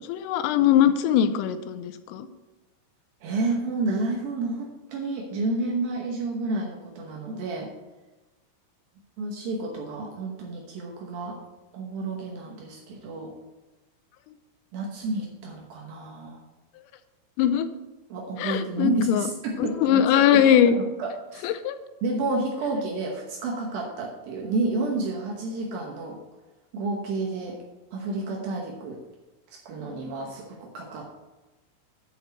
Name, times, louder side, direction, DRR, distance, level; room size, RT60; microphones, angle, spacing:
voice 1, 0.1-2.3 17.4-17.7 18.4-19.3 19.6-20.7 21.4-21.8, left 10 dB, 85° left, 11 dB, 3.2 m, -21 dB
voice 2, 3.2-7.7 9.2-11.4 11.7-13.3 14.7-16.4 18.1-20.4 20.7-21.5 22.0-26.2 26.7-27.6 27.9-29.0 29.5-31.1, right 2 dB, 80° right, -1 dB, 2.1 m, -30 dB
8.7 x 4.7 x 6.4 m, 1.1 s
omnidirectional pair, 5.8 m